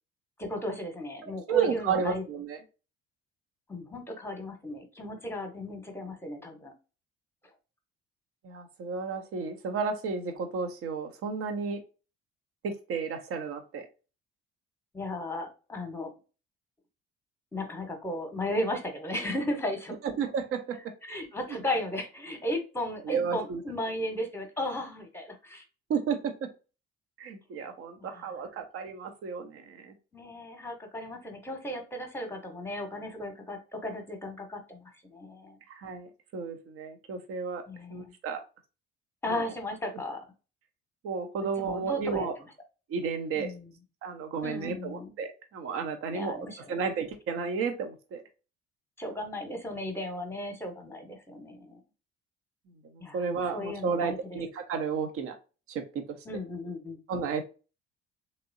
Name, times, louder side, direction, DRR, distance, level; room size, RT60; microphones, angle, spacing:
voice 1, 0.4-2.2 3.7-6.7 14.9-16.1 17.5-20.0 21.0-25.6 28.0-28.1 30.1-35.6 37.7-38.1 39.2-40.2 41.6-42.3 43.3-43.7 44.4-45.1 46.1-46.8 49.0-51.8 53.0-54.4 56.3-57.0, left 1 dB, 5° left, 5 dB, 1.1 m, -35 dB
voice 2, 1.5-2.6 8.4-11.8 12.6-13.9 20.0-20.8 21.5-21.6 23.0-23.6 25.9-26.5 27.2-29.9 35.7-37.6 37.9-38.4 39.3-39.5 41.0-42.3 42.9-43.5 44.0-48.2 52.9-55.4 55.7-56.2 57.1-57.4, right 5 dB, 45° right, 7 dB, 0.8 m, -32 dB
3.5 x 3.0 x 2.6 m, 0.33 s
figure-of-eight pair, 50°, 32 cm